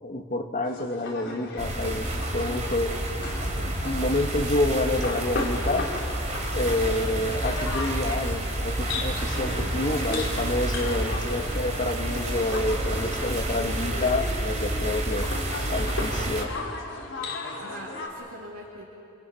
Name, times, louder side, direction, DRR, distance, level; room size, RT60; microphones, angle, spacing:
voice 1, 0.0-2.9 3.2-5.9 6.5-15.3 15.7-16.5, left 2 dB, 35° left, 2 dB, 1.9 m, -28 dB
sound 1, 0.6-18.1, left 2 dB, 55° left, 3.5 m, -37 dB
sound 2, 1.6-16.4, right 1 dB, 35° right, 3.2 m, -29 dB
voice 2, 17.2-18.8, right 1 dB, 70° right, -4 dB, 2.8 m, -43 dB
27.5 x 27.0 x 5.9 m, 2.6 s
head